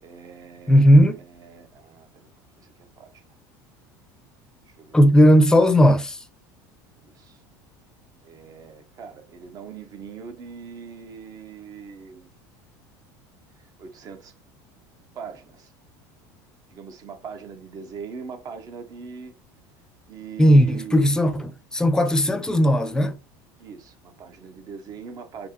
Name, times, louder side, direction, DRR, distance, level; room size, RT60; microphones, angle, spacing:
voice 1, 0.0-2.2 2.5-3.2 4.7-5.0 7.0-7.4 8.2-12.3 13.8-14.3 15.1-15.7 16.7-19.3 20.1-21.2 23.6-25.5, right 6 dB, 40° right, 0.9 m, -41 dB
voice 2, 0.7-1.2 4.9-6.2 20.4-23.2, equal, 5° left, 0.6 m, -16 dB
4.5 x 2.9 x 3.0 m
supercardioid pair, 125°, 9 cm